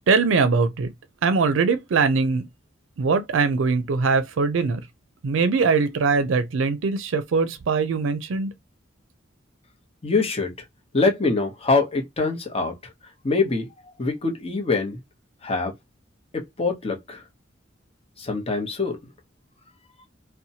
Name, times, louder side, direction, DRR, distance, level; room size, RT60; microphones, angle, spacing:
voice 1, 0.1-0.9 1.2-2.5 3.0-4.9 5.2-8.5, right 4 dB, 80° right, 0.4 m, -21 dB
voice 2, 10.0-10.5 10.9-12.7 13.2-13.7 14.0-15.0 15.4-15.7 16.6-17.2 18.2-19.0, left 3 dB, 30° left, 0.8 m, -24 dB
2.8 x 2.1 x 2.7 m
head